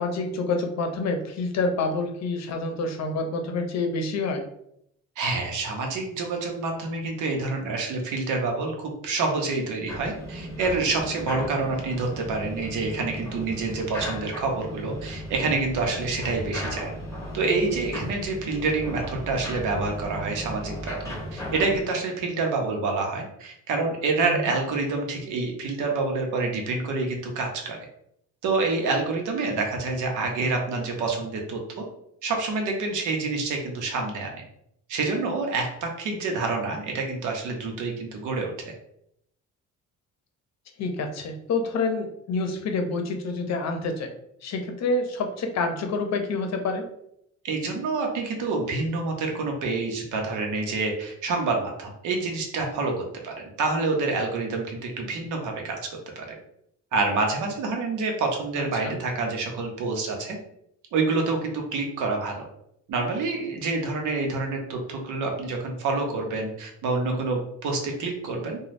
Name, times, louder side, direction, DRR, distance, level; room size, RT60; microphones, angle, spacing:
voice 1, 0.0-4.4 24.3-24.5 40.8-44.1 44.4-46.9 58.8-59.0, left 3 dB, 60° left, 5 dB, 0.7 m, -27 dB
voice 2, 5.2-16.9 17.3-27.8 28.4-31.8 32.2-34.4 34.9-38.5 47.4-55.8 56.2-56.3 56.9-60.4 60.9-62.4 62.9-68.6, right 3 dB, 80° right, 2 dB, 0.8 m, -27 dB
sound 1, 9.9-21.8, equal, 10° left, 1.1 m, -36 dB
3.1 x 2.3 x 2.6 m, 0.75 s
cardioid pair, 90°, 30 cm